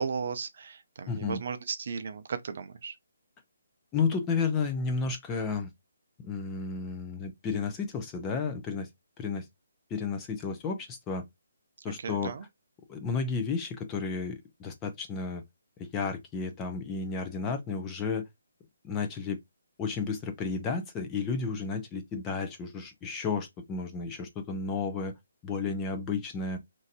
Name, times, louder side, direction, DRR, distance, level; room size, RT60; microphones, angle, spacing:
voice 1, 0.0-3.0 12.0-12.4, right 6 dB, 50° right, 0.5 m, -35 dB
voice 2, 1.1-1.4 3.9-5.7 6.2-8.9 9.2-9.4 9.9-11.2 11.8-12.3 12.9-15.4 15.8-18.3 18.8-19.4 19.8-25.1 25.4-26.6, left 5 dB, 15° left, 0.5 m, -32 dB
3.1 x 2.7 x 2.7 m
hypercardioid pair, 170°, 0 cm